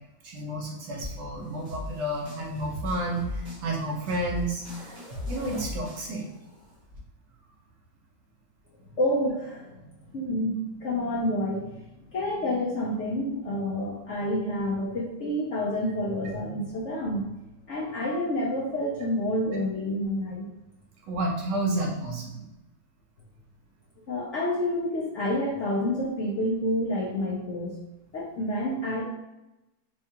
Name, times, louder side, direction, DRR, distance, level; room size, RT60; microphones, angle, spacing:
voice 1, 0.2-4.9 5.3-6.2 21.1-22.4, right 1 dB, 80° right, -2 dB, 1.4 m, -31 dB
sound 1, 1.0-7.0, left 1 dB, 50° right, 1.2 m, -39 dB
voice 2, 8.8-9.7 10.1-11.8 12.1-17.2 17.7-20.5 24.0-27.8 28.1-29.0, left 1 dB, 60° left, -4 dB, 0.7 m, -28 dB
4.5 x 2.3 x 2.8 m, 0.96 s
omnidirectional pair, 1.9 m